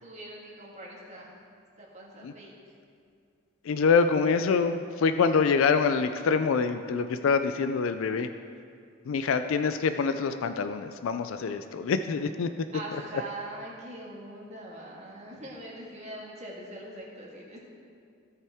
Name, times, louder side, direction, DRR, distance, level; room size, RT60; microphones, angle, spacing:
voice 1, 0.0-1.3 1.8-2.5 12.7-17.6, right 1 dB, 30° right, -4 dB, 1.7 m, -42 dB
voice 2, 3.7-8.3 9.1-12.5, left 5 dB, 75° left, 9 dB, 0.4 m, -25 dB
16.5 x 5.6 x 3.5 m, 2.3 s
head